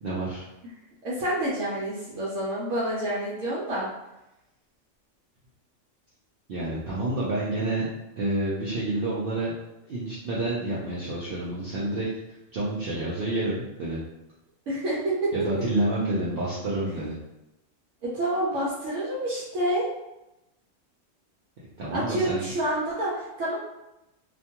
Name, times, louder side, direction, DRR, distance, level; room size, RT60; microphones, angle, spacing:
voice 1, 0.0-0.4 6.5-9.5 9.9-12.1 12.5-14.0 15.3-17.1 21.8-22.5, right 2 dB, 55° right, -8 dB, 0.7 m, -29 dB
voice 2, 1.0-3.9 14.7-15.3 18.0-19.9 21.9-23.6, right 1 dB, 80° right, -7 dB, 1.0 m, -28 dB
2.5 x 2.3 x 2.8 m, 0.93 s
omnidirectional pair, 1.3 m